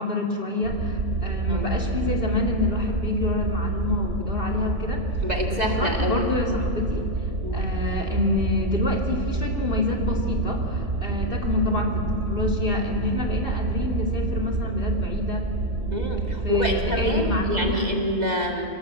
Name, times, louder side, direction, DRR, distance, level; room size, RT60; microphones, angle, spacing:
voice 1, 0.0-5.0 5.5-7.1 7.5-15.4 16.4-17.9, left 2 dB, 45° left, 0 dB, 2.7 m, -27 dB
sound 1, 0.6-17.8, right 3 dB, 55° right, 1.4 m, -28 dB
voice 2, 5.2-6.6 7.4-7.7 15.9-18.7, left 1 dB, 35° right, 1 dB, 2.1 m, -27 dB
26.0 x 17.0 x 7.5 m, 2.5 s
omnidirectional pair, 1.3 m